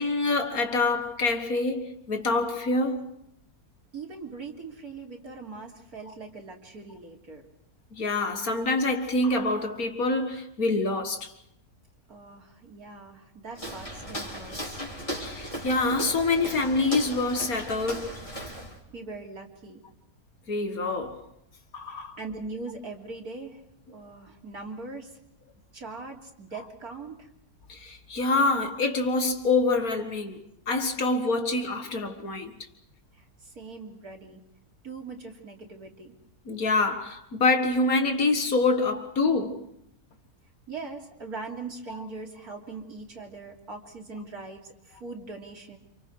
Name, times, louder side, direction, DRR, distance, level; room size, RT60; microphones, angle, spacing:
voice 1, 0.0-3.2 7.9-11.3 15.2-18.1 20.5-21.2 21.7-22.2 27.7-32.5 36.5-39.7, left 3 dB, 55° left, 2.1 m, -26 dB
voice 2, 3.9-7.4 12.1-14.8 18.9-19.8 21.9-23.6 23.9-25.2 25.7-27.3 33.1-34.4 34.8-36.1 40.7-45.8, right 3 dB, 60° right, 3.6 m, -41 dB
Walk footsteps, 13.5-18.8, equal, 20° left, 4.0 m, -37 dB
29.5 x 28.0 x 4.8 m
omnidirectional pair, 1.8 m